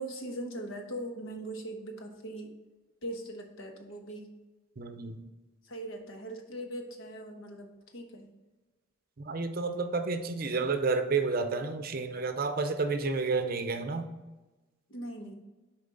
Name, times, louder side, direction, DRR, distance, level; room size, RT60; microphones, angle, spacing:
voice 1, 0.0-2.5 3.0-4.3 5.6-8.3 14.9-15.3, right 1 dB, 70° left, 3 dB, 1.1 m, -40 dB
voice 2, 4.8-5.2 9.3-14.1, right 4 dB, 45° right, 8 dB, 0.6 m, -30 dB
7.2 x 4.5 x 3.8 m, 1.2 s
head